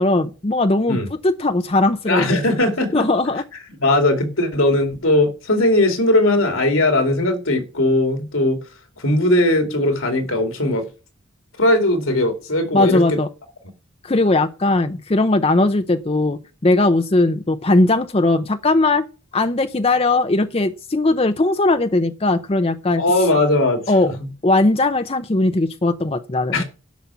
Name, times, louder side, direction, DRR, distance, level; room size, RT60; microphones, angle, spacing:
voice 1, 0.0-1.0 1.2-2.2 2.9-3.4 12.7-13.3 14.0-19.0 19.3-23.0 23.9-24.1 24.4-26.6, left 2 dB, 30° left, 0.6 m, -18 dB
voice 2, 2.1-3.1 3.5-8.6 9.0-10.8 11.6-13.2 23.0-24.3 26.5-26.6, left 1 dB, 85° left, 2.6 m, -19 dB
11.5 x 5.9 x 7.0 m
head